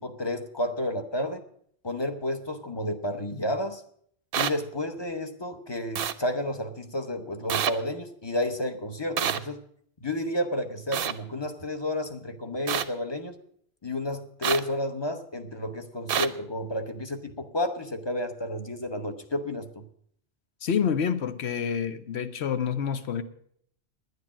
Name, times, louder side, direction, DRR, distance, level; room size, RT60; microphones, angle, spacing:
voice 1, 0.0-1.4 1.8-3.8 4.4-9.6 10.0-13.4 13.8-19.8, left 1 dB, 25° left, 0.8 m, -31 dB
sound 1, 4.3-4.5 6.0-6.1 7.5-7.7 9.2-9.4 10.9-11.1 12.7-12.8 14.4-14.6 16.1-16.3, right 9 dB, 60° right, 0.8 m, -26 dB
voice 2, 20.6-23.2, left 7 dB, 75° left, 1.1 m, -28 dB
10.5 x 9.5 x 7.3 m
omnidirectional pair, 1.1 m